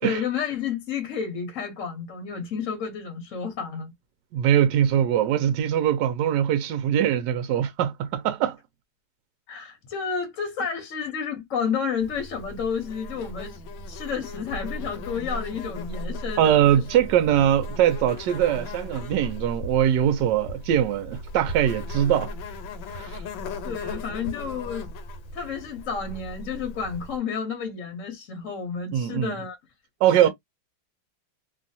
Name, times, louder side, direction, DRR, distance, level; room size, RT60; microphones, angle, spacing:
voice 1, 0.0-3.9 9.5-13.6 13.9-16.8 17.3-17.5 23.0-23.2 23.6-24.9 25.3-29.6 30.2-30.3, left 6 dB, 55° left, 0.9 m, -31 dB
voice 2, 4.3-8.6 16.4-22.3 22.9-23.2 28.9-29.4 30.0-30.3, right 10 dB, 75° right, 1.1 m, -22 dB
Insect, 12.0-27.2, left 1 dB, 80° left, 1.4 m, -37 dB
3.1 x 2.3 x 2.6 m
omnidirectional pair, 2.1 m